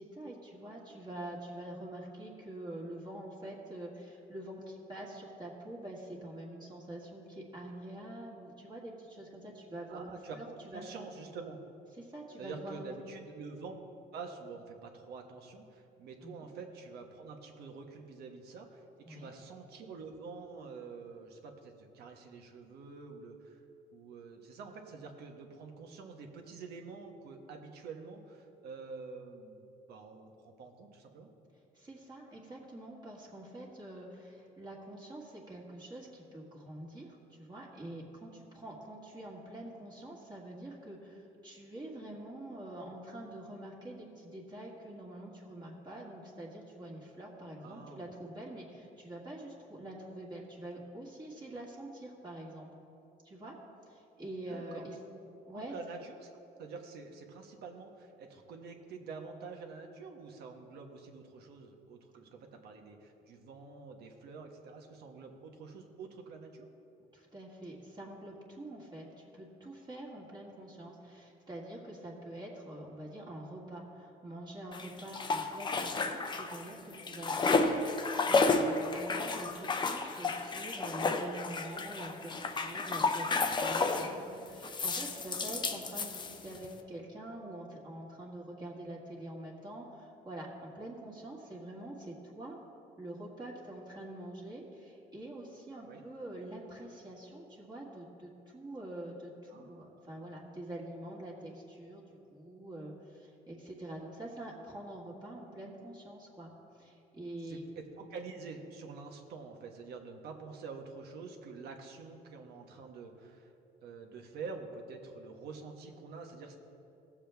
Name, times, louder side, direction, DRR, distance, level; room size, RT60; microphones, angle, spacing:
voice 1, 0.0-10.5 10.7-10.8 12.0-12.9 16.2-16.3 19.1-19.3 31.7-52.7 53.2-53.6 53.8-55.0 55.5-55.7 67.1-92.6 93.0-102.0 102.3-107.6, right 1 dB, 25° right, -3 dB, 1.8 m, -45 dB
voice 2, 9.9-11.6 12.4-13.7 14.1-23.6 23.9-31.3 47.6-48.1 54.5-54.8 55.5-66.7 77.4-77.5 84.0-84.2 95.8-96.0 99.5-100.3 107.4-113.5 113.8-116.5, right 4 dB, 75° right, 3 dB, 1.3 m, -47 dB
sound 1, 74.7-76.7 76.9-84.1 84.6-86.7, left 3 dB, 25° left, 0.7 m, -32 dB
17.0 x 7.3 x 3.5 m, 2.8 s
cardioid pair, 110°, 17 cm